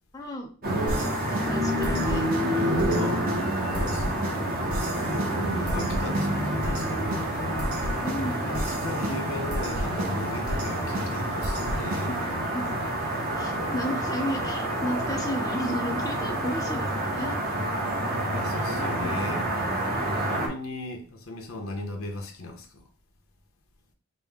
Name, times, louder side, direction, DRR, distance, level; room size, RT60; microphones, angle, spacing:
voice 1, 0.1-0.5 1.0-2.3 2.7-2.9 4.4-4.5 8.0-8.4 12.1-12.3 12.5-12.7 13.4-17.4 19.0-19.1 19.5-20.0, left 1 dB, 15° left, 0.5 m, -34 dB
sound 1, 0.6-20.5, right 1 dB, 45° right, 0.9 m, -28 dB
sound 2, 0.9-12.4, right 1 dB, 70° right, 0.7 m, -34 dB
voice 2, 2.5-3.2 3.6-4.1 4.9-7.4 8.4-12.2 18.3-19.5 20.2-22.8, left 2 dB, 80° left, 0.8 m, -37 dB
5.1 x 2.1 x 3.5 m
head